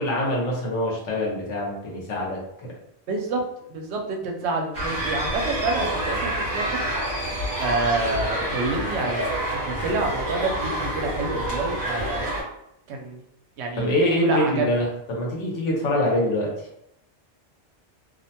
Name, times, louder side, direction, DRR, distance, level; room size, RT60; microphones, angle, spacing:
voice 1, 0.0-2.4 13.8-16.5, left 1 dB, 90° left, -3 dB, 1.1 m, -24 dB
voice 2, 3.1-3.4 3.7-6.8 7.6-12.3 12.9-13.2 13.6-14.7, right 3 dB, 70° right, 1 dB, 0.8 m, -28 dB
sound 1, 4.7-12.4, right 1 dB, 40° right, 1.0 m, -28 dB
2.6 x 2.1 x 2.7 m, 0.77 s
omnidirectional pair, 1.2 m